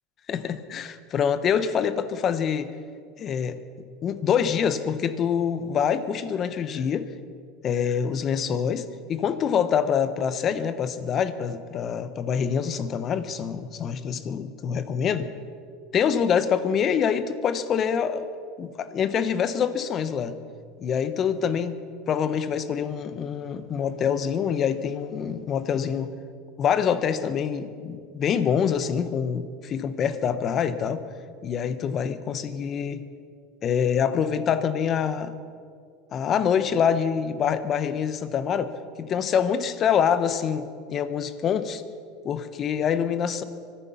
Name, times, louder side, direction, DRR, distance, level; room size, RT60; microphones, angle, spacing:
voice 1, 0.3-2.7 3.2-7.1 7.6-15.3 15.9-18.3 18.6-20.3 20.8-21.8 22.1-26.1 26.6-31.0 31.4-33.0 33.6-35.3 36.1-38.7 39.0-41.8 42.2-43.4, left 7 dB, 40° left, 12 dB, 1.2 m, -25 dB
24.5 x 10.5 x 5.8 m, 2.1 s
hypercardioid pair, 95°, 0 cm